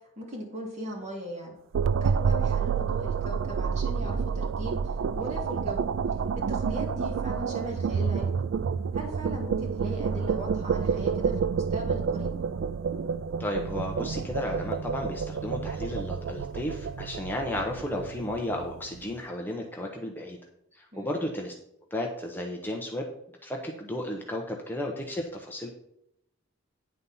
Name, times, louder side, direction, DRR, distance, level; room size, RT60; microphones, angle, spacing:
voice 1, 0.2-1.6 2.0-5.9 6.4-8.4 8.9-12.3 20.9-21.3, right 1 dB, 40° right, -1 dB, 2.4 m, -38 dB
sound 1, 1.7-19.0, right 6 dB, 75° right, 0.3 m, -29 dB
voice 2, 13.4-20.4 20.7-21.5 21.9-23.1 23.4-25.7, left 1 dB, 10° left, 1 dB, 0.7 m, -33 dB
9.6 x 4.1 x 5.5 m, 0.79 s
head